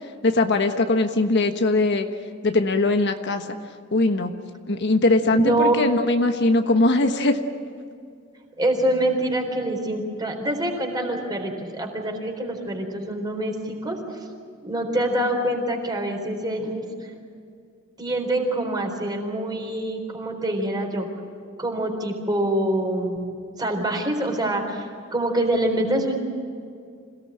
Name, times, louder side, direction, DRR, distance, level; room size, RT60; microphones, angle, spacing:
voice 1, 0.2-2.1 2.4-3.4 3.9-4.3 4.7-7.4, left 2 dB, 60° left, 6 dB, 1.3 m, -20 dB
voice 2, 5.3-5.8 8.6-14.2 14.6-16.9 18.0-21.1 21.6-23.2 23.6-24.9 25.1-26.2, right 1 dB, 20° right, 3 dB, 4.1 m, -25 dB
27.0 x 17.5 x 9.0 m, 2.3 s
head